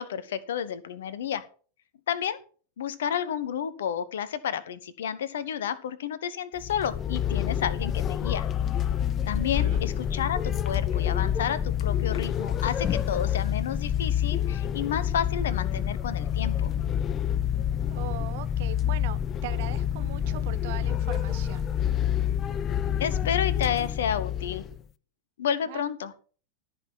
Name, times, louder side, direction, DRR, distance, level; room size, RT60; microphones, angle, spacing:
voice 1, 0.0-1.4 2.1-2.4 2.8-8.5 9.3-16.7 23.0-24.6 25.4-26.1, left 8 dB, 60° left, 15 dB, 1.1 m, -31 dB
sound 1, 6.6-24.8, left 10 dB, 30° left, 0.5 m, -28 dB
voice 2, 9.4-9.8 17.9-21.7 25.7-25.8, right 15 dB, 50° right, 12 dB, 1.0 m, -40 dB
13.5 x 6.0 x 6.1 m, 0.39 s
figure-of-eight pair, 90°, 0 cm